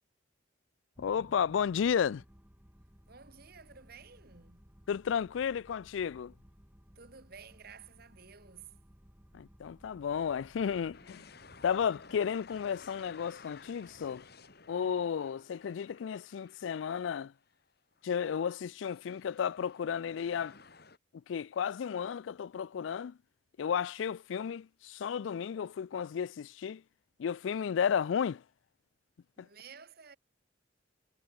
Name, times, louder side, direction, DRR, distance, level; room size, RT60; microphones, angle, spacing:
voice 1, 1.0-2.2 4.9-6.3 9.3-11.2 11.6-14.2 14.7-17.3 18.0-20.5 21.3-23.1 23.6-26.8 27.2-28.4, left 7 dB, 80° left, 0.4 m, -33 dB
sound 1, 1.0-15.4, equal, 10° right, 2.4 m, -60 dB
voice 2, 3.1-4.7 7.0-8.8 29.4-30.2, right 6 dB, 55° right, 2.5 m, -53 dB
sound 2, 10.9-17.5 17.9-18.0 18.8-21.0, left 4 dB, 55° left, 2.4 m, -55 dB
head